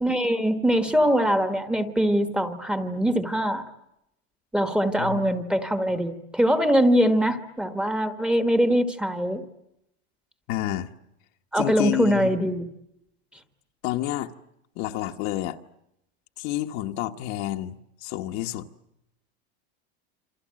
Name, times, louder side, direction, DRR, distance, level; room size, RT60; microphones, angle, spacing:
voice 1, 0.0-3.6 4.5-9.4 11.5-12.7, equal, 5° right, 1.3 m, -23 dB
voice 2, 5.0-5.3 10.5-10.9 11.5-12.3 13.8-14.3 14.8-15.6 16.4-18.7, left 14 dB, 45° left, 1.2 m, -29 dB
28.0 x 27.0 x 7.6 m
supercardioid pair, 175°, 32 cm